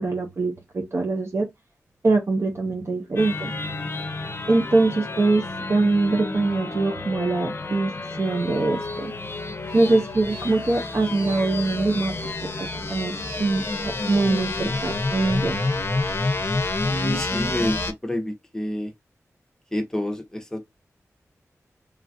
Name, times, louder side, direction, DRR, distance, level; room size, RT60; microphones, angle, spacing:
voice 1, 0.0-1.5 2.0-3.5 4.5-9.1 9.7-12.1 12.6-15.6, right 3 dB, 50° right, 0.6 m, -23 dB
sound 1, 3.2-17.9, left 2 dB, 45° left, 0.6 m, -29 dB
voice 2, 16.9-17.7 18.0-18.9 19.7-20.6, left 1 dB, 10° left, 0.7 m, -28 dB
3.2 x 2.3 x 2.5 m
cardioid pair, 60°, 6 cm